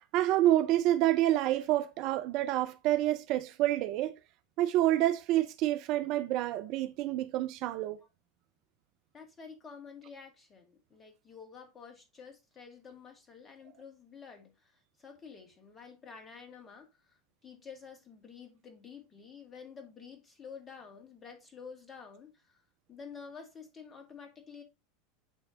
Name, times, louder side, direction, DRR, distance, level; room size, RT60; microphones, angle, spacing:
voice 1, 0.1-4.2 4.6-8.0, right 14 dB, 45° right, 0.5 m, -28 dB
voice 2, 9.1-22.6 22.9-24.6, left 6 dB, 25° left, 2.2 m, -50 dB
9.0 x 3.3 x 3.7 m
figure-of-eight pair, 85°, 0 cm